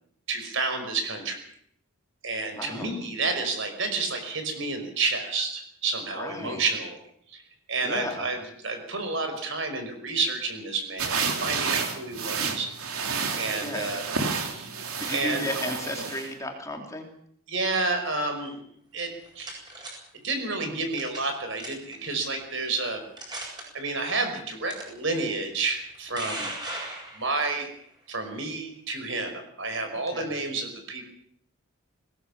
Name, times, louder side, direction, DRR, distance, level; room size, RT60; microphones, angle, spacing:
voice 1, 0.3-1.4 2.2-7.0 7.3-7.4 7.7-12.7 13.4-14.0 14.3-14.7 15.1-15.4 17.5-18.6 18.9-19.6 20.2-23.0 23.7-26.5 27.1-27.7 28.1-31.0, right 3 dB, 55° right, 6 dB, 5.4 m, -30 dB
voice 2, 2.6-2.9 6.1-6.6 7.8-8.3 13.6-13.9 15.0-17.1 26.1-26.4 30.1-30.3, left 1 dB, 15° left, 3 dB, 2.9 m, -34 dB
sound 1, 11.0-16.3, right 5 dB, 80° right, 3.5 m, -30 dB
sound 2, 19.0-19.9 20.9-21.3 21.6-21.9 22.6-22.7 23.2-23.6 24.7-24.8 25.7-27.5, right 1 dB, 20° right, 7.8 m, -36 dB
21.5 x 18.5 x 7.3 m, 0.66 s
head